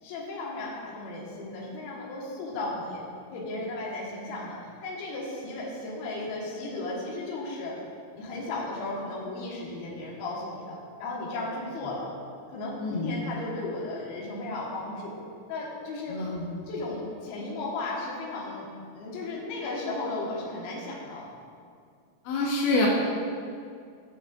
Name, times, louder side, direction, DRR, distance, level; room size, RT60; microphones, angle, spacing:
voice 1, 0.0-3.0 3.3-7.7 8.1-12.1 12.5-15.1 15.5-16.2 16.7-18.7 18.9-21.3, left 2 dB, 70° left, -4 dB, 3.3 m, -35 dB
voice 2, 12.8-13.2 16.1-16.4 22.2-22.9, left 2 dB, 85° left, -3 dB, 3.2 m, -27 dB
16.5 x 7.0 x 2.6 m, 2.3 s
omnidirectional pair, 4.7 m